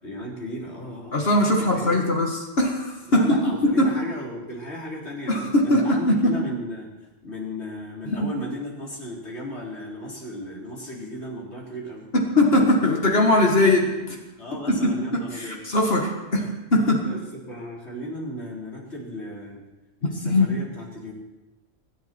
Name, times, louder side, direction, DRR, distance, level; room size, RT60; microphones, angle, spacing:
voice 1, 0.0-1.2 1.6-2.1 3.1-6.9 7.2-12.1 14.4-15.6 16.3-16.5 17.0-19.7 20.0-21.1, left 1 dB, 85° left, -3 dB, 4.2 m, -35 dB
voice 2, 1.1-3.4 3.6-3.9 5.3-6.4 8.2-8.3 12.1-14.2 14.7-17.1 20.0-20.5, left 1 dB, 65° left, 0 dB, 2.1 m, -21 dB
24.5 x 11.0 x 4.5 m, 1.1 s
omnidirectional pair, 1.1 m